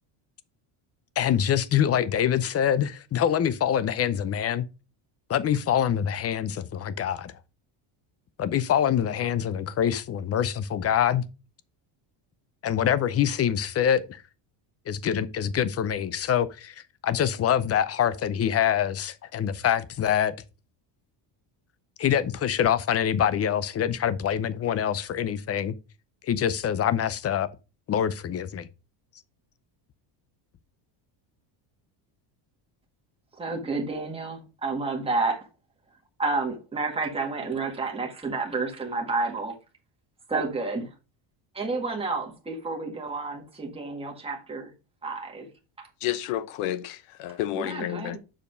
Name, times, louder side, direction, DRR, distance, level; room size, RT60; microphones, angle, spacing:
voice 1, 1.2-4.6 5.3-7.3 8.4-11.2 12.6-14.2 14.9-20.3 22.0-25.7 26.2-27.5 27.9-28.7, left 9 dB, 30° left, 0.6 m, -25 dB
voice 2, 33.4-35.5 36.2-39.5 40.3-40.9 41.5-44.7 45.0-45.5 45.8-45.9 47.5-48.2, right 3 dB, 10° right, 1.8 m, -30 dB
voice 3, 46.0-48.2, left 13 dB, 80° left, 1.0 m, -30 dB
7.0 x 5.1 x 5.1 m
cardioid pair, 145°, 50 cm